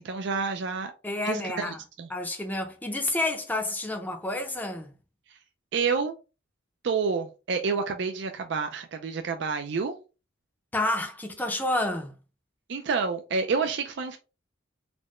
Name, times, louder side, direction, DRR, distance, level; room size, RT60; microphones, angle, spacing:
voice 1, 0.0-0.9 1.2-1.4 1.7-2.1 5.3-5.4 5.7-6.1 6.8-10.0 12.7-14.2, right 5 dB, 60° right, 0.4 m, -29 dB
voice 2, 1.0-1.8 2.1-4.9 10.7-12.1, left 2 dB, 10° left, 0.5 m, -29 dB
4.2 x 2.1 x 3.0 m
head